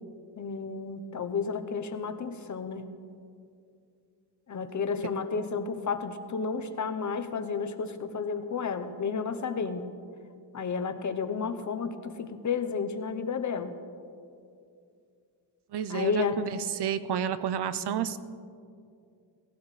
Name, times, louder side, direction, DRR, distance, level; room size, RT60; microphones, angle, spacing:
voice 1, 0.4-2.9 4.5-9.9 10.5-13.8 15.9-16.4, left 5 dB, 40° left, 9 dB, 0.8 m, -32 dB
voice 2, 15.7-18.2, right 8 dB, 65° right, 13 dB, 0.7 m, -30 dB
17.5 x 16.0 x 3.2 m, 2.4 s
wide cardioid pair, 130°, 43 cm